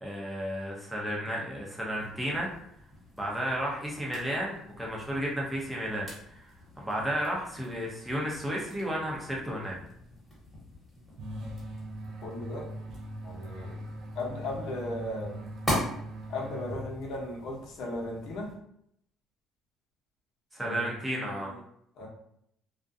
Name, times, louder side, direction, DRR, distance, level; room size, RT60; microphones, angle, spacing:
voice 1, 0.0-2.5 3.2-6.5 6.8-9.7 20.5-21.5, equal, 5° right, -4 dB, 0.7 m, -33 dB
sound 1, 1.9-18.5, left 1 dB, 10° left, 1.3 m, -42 dB
sound 2, 11.2-17.3, right 1 dB, 60° right, 0.4 m, -41 dB
voice 2, 12.2-12.7 13.2-13.8 14.1-15.4 16.3-18.5 20.6-21.6 22.0-22.1, left 1 dB, 70° left, -2 dB, 0.8 m, -37 dB
2.4 x 2.2 x 2.6 m, 0.72 s
cardioid pair, 105°, 0 cm